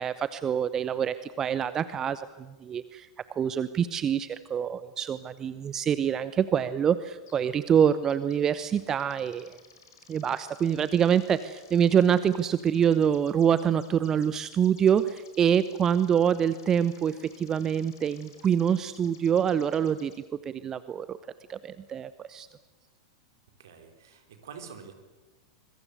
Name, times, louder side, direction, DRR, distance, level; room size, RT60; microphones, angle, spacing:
voice 1, 0.0-3.1 3.4-9.5 10.1-20.1 20.4-21.2 21.5-22.5, right 8 dB, 25° right, 14 dB, 0.9 m, -25 dB
sound 1, 7.3-7.5 7.8-20.2, left 6 dB, 65° left, 4.8 m, -57 dB
voice 2, 23.6-24.9, right 6 dB, 60° right, 6 dB, 4.3 m, -46 dB
25.0 x 22.0 x 8.2 m, 1.2 s
figure-of-eight pair, 90°, 2 cm